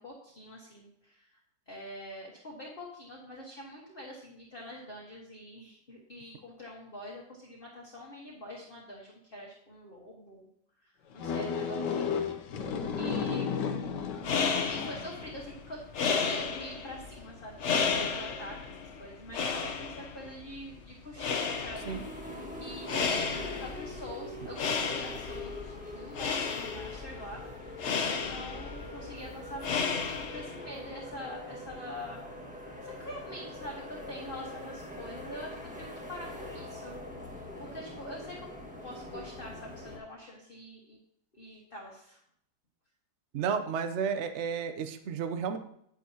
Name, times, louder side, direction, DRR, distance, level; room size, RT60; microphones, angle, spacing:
voice 1, 0.0-1.4 1.7-10.5 10.8-12.1 12.6-13.5 14.7-32.2 32.8-37.0 37.6-38.5 38.8-41.0 41.3-42.2, left 1 dB, 35° left, -3 dB, 1.4 m, -45 dB
sound 1, 11.2-15.2, left 6 dB, 80° left, 1.4 m, -33 dB
sound 2, 14.0-30.7, left 5 dB, 55° left, 0.9 m, -33 dB
sound 3, 21.8-40.0, left 1 dB, 5° right, 1.5 m, -43 dB
voice 2, 43.3-45.6, right 6 dB, 55° right, 9 dB, 0.8 m, -32 dB
9.2 x 9.1 x 2.8 m, 0.72 s
omnidirectional pair, 1.8 m